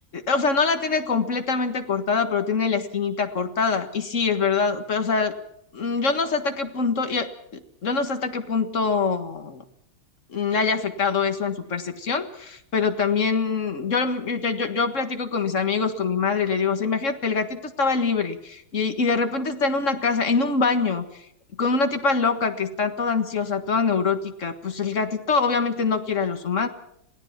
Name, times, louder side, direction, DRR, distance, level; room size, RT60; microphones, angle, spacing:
voice 1, 0.1-5.4 5.7-9.6 10.3-21.2 21.6-26.7, left 5 dB, 35° left, 7 dB, 1.8 m, -24 dB
27.0 x 17.5 x 5.9 m, 0.75 s
omnidirectional pair, 2.4 m